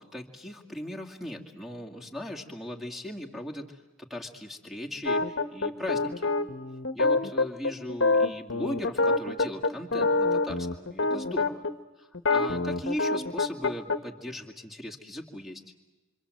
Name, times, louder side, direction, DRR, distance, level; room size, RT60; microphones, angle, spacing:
voice 1, 0.0-6.3 6.9-11.6 12.0-15.6, left 1 dB, ahead, 3 dB, 2.2 m, -38 dB
sound 1, 5.1-11.7 12.1-14.0, left 3 dB, 60° left, 1.1 m, -26 dB
27.5 x 26.0 x 7.7 m, 1.2 s
head